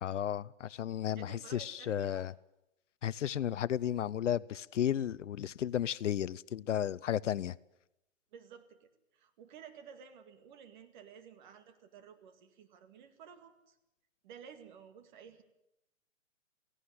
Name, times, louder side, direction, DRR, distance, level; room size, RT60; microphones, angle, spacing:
voice 1, 0.0-2.3 3.0-7.6, left 10 dB, 65° left, 0.7 m, -33 dB
voice 2, 1.2-2.3 8.3-13.8 14.2-15.4, right 7 dB, 35° right, 2.1 m, -53 dB
18.0 x 16.5 x 9.5 m
hypercardioid pair, 150°, 39 cm